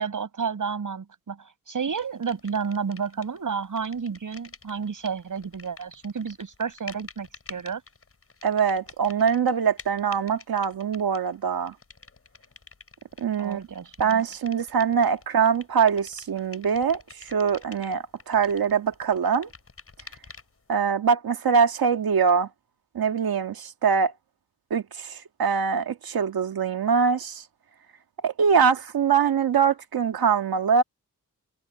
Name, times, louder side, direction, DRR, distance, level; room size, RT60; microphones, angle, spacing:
voice 1, 0.0-7.8 13.4-14.2, right 6 dB, 60° right, 5.5 m, -31 dB
sound 1, 2.0-3.4 3.6-20.7, left 4 dB, 40° left, 6.6 m, -48 dB
voice 2, 8.4-11.7 13.2-13.6 14.0-19.5 20.7-22.5 23.0-24.1 24.7-27.4 28.2-30.8, right 6 dB, 85° right, 2.0 m, -23 dB
wide cardioid pair, 110°, 35 cm